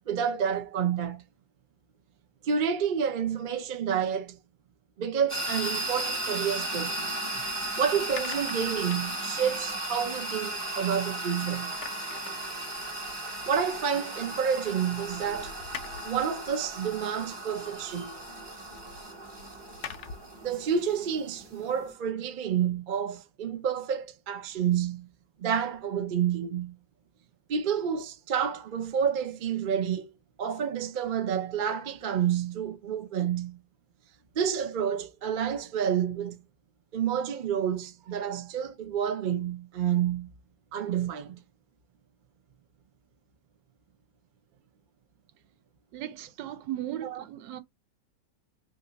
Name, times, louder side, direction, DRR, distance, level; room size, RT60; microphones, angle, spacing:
voice 1, 0.1-1.2 2.4-4.4 5.0-7.1 7.8-11.7 13.4-15.6 16.0-18.1 20.4-25.1 25.4-26.7 27.5-30.1 30.4-33.6 34.3-36.4 36.9-40.3 40.7-41.4 47.0-47.2, right 8 dB, 55° right, 0.5 m, -29 dB
sound 1, 5.3-21.9, right 1 dB, 20° right, 0.9 m, -36 dB
sound 2, 6.6-11.3 11.5-20.4, left 7 dB, 85° left, 0.6 m, -48 dB
voice 2, 45.9-47.6, right 12 dB, 80° right, 1.3 m, -37 dB
2.9 x 2.6 x 3.9 m
omnidirectional pair, 1.9 m